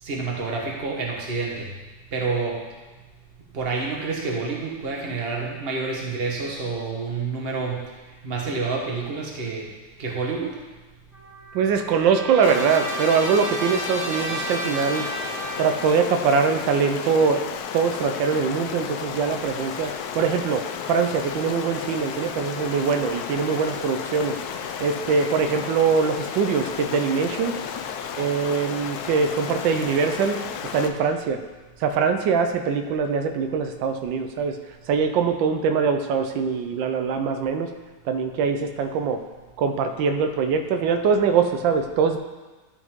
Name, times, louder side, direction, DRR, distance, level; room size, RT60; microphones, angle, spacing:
voice 1, 0.0-1.7 2.1-2.6 3.5-7.9 8.2-9.7 10.0-10.5, right 4 dB, 35° right, -1 dB, 1.3 m, -28 dB
Trumpet, 11.1-16.0, right 2 dB, 30° left, 2.3 m, -33 dB
voice 2, 11.5-15.1 15.6-17.4 17.7-24.3 24.6-27.5 28.2-30.4 30.7-31.4 31.8-34.6 34.9-37.7 38.1-39.2 39.6-42.2, right 5 dB, 90° right, 7 dB, 1.4 m, -23 dB
Stream, 12.4-30.9, left 7 dB, 70° left, 1.0 m, -33 dB
12.0 x 5.2 x 3.6 m, 1.2 s
omnidirectional pair, 2.0 m